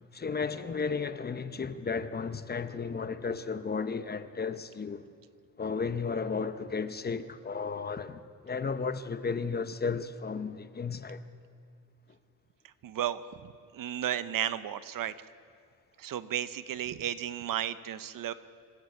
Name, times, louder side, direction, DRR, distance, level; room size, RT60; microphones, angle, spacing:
voice 1, 0.1-5.1 5.6-11.2, left 5 dB, 30° left, 0.8 m, -34 dB
voice 2, 12.8-13.2 13.7-15.1 16.0-18.3, right 11 dB, 80° right, 0.8 m, -33 dB
26.5 x 13.0 x 8.3 m
wide cardioid pair, 145°, 33 cm